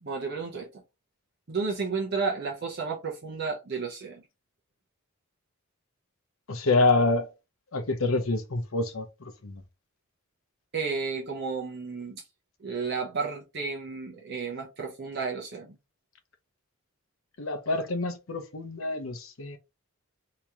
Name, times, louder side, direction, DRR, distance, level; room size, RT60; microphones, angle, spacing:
voice 1, 0.0-0.8 1.5-4.2 10.7-12.2 12.6-15.8, right 4 dB, 50° right, 0.7 m, -32 dB
voice 2, 6.5-7.3 7.7-9.1 9.4-9.6 17.4-19.6, left 3 dB, 70° left, 0.8 m, -26 dB
3.0 x 2.8 x 3.5 m
head